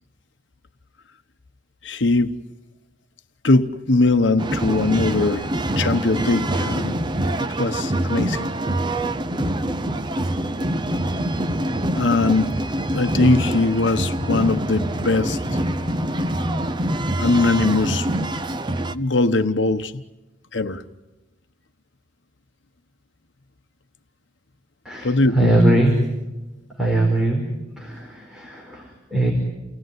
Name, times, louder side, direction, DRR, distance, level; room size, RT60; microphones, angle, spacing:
voice 1, 1.8-2.4 3.4-5.5 5.8-7.0 7.4-8.5 11.9-12.6 12.9-15.4 17.2-18.6 18.9-20.0 20.5-20.8 25.0-25.6, left 3 dB, 80° left, 1.0 m, -21 dB
sound 1, 4.4-18.9, right 1 dB, 25° right, 0.8 m, -25 dB
voice 2, 24.8-26.0 26.8-27.5 27.8-29.3, right 1 dB, 5° right, 4.7 m, -20 dB
29.5 x 19.0 x 9.5 m
head